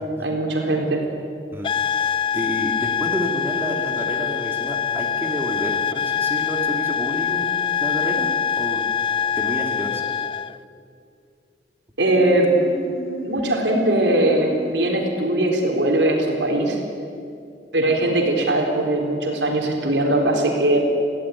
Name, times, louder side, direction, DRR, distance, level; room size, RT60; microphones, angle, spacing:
voice 1, 0.2-1.0 12.0-12.5 13.2-16.8 17.7-20.8, right 1 dB, 85° right, 1 dB, 3.9 m, -20 dB
voice 2, 1.5-2.1 2.3-8.9 9.4-10.0, equal, 15° right, 0 dB, 2.4 m, -30 dB
sound 1, 1.6-10.6, left 7 dB, 30° left, 0.4 m, -24 dB
sound 2, 12.1-15.5, equal, 60° left, 7.3 m, -35 dB
20.0 x 15.5 x 9.6 m, 2.4 s
head